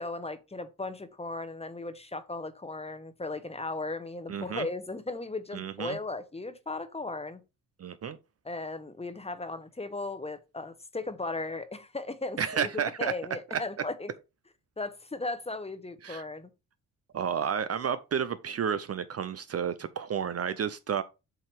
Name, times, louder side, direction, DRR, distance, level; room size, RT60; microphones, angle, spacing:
voice 1, 0.0-7.4 8.4-14.1 14.8-16.5, left 2 dB, 15° left, 1.0 m, -36 dB
voice 2, 4.3-4.7 5.5-6.0 7.8-8.2 12.4-13.1 13.5-13.6 16.0-16.3 17.1-21.0, right 7 dB, 40° right, 0.6 m, -31 dB
7.7 x 2.9 x 4.6 m
cardioid pair, 75°, 36 cm